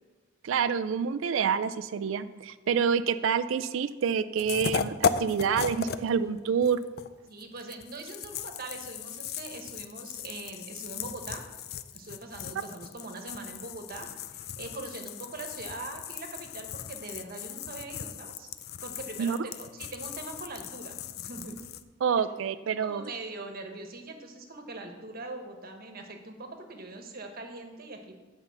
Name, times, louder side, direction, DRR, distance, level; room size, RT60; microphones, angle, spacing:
voice 1, 0.4-6.8 19.2-19.4 22.0-23.0, right 7 dB, 75° right, 11 dB, 0.4 m, -27 dB
sound 1, 4.4-6.1 6.4-21.8, left 7 dB, 55° left, 0.4 m, -36 dB
voice 2, 7.3-11.4 11.9-18.5 18.8-21.6 22.8-28.2, right 2 dB, 50° right, 4 dB, 1.3 m, -42 dB
8.9 x 5.5 x 7.0 m, 1.3 s
head